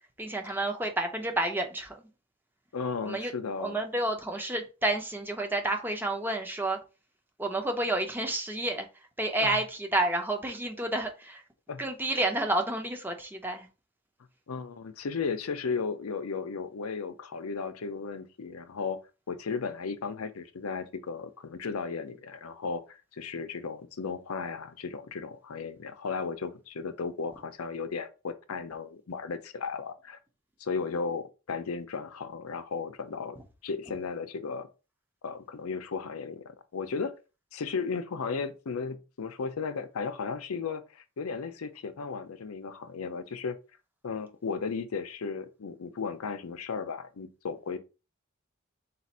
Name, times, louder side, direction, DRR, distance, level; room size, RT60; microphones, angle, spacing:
voice 1, 0.2-2.0 3.0-3.3 3.6-6.8 7.4-8.9 9.2-11.4 11.8-13.7, right 1 dB, 10° right, 0.6 m, -30 dB
voice 2, 2.7-3.8 9.4-9.6 11.7-11.8 14.5-19.0 19.3-30.2 30.6-34.7 35.2-37.1 37.5-43.6 44.0-47.8, left 5 dB, 90° left, 0.6 m, -35 dB
4.0 x 2.5 x 4.2 m
head